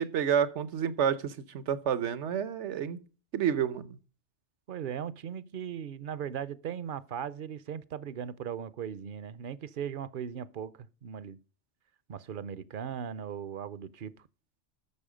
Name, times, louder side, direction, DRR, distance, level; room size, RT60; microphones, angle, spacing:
voice 1, 0.0-3.0 3.3-4.0, right 8 dB, 80° right, 1.2 m, -29 dB
voice 2, 4.7-11.4 12.1-14.1, right 8 dB, 55° right, 0.7 m, -38 dB
12.5 x 7.1 x 5.0 m
omnidirectional pair, 1.2 m